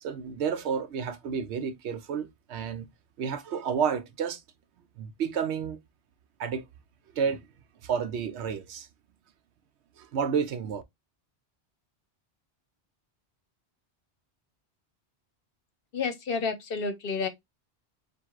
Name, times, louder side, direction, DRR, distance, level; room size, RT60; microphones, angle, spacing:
voice 1, 0.0-2.9 3.2-4.4 5.0-5.8 6.4-6.7 7.1-7.5 7.8-8.9 10.0-10.8, right 7 dB, 75° right, 0.9 m, -30 dB
voice 2, 15.9-17.3, left 5 dB, 60° left, 0.9 m, -30 dB
7.4 x 2.5 x 2.4 m
omnidirectional pair, 1.2 m